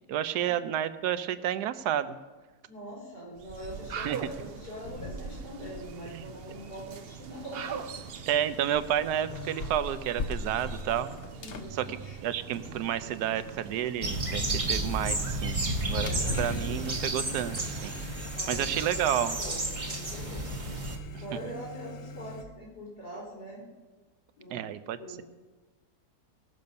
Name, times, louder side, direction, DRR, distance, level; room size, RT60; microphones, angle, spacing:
voice 1, 0.1-2.2 4.0-4.2 6.1-6.3 8.3-11.1 11.7-15.6 15.9-16.1 16.4-18.0 18.5-19.4 21.1-21.2 24.5-25.2, right 10 dB, 80° right, 13 dB, 1.2 m, -30 dB
voice 2, 2.7-7.8 11.4-11.9 16.0-16.4 16.7-16.9 18.3-20.5 21.1-23.6 24.4-25.2, equal, 80° left, -4 dB, 4.3 m, -43 dB
sound 1, 3.4-18.2, right 7 dB, 60° right, 0.6 m, -43 dB
sound 2, 4.8-5.6 5.8-22.4, left 4 dB, 50° left, 0.7 m, -43 dB
sound 3, 14.0-21.0, right 2 dB, 25° right, 1.1 m, -32 dB
18.5 x 6.9 x 5.3 m, 1.3 s
omnidirectional pair, 1.7 m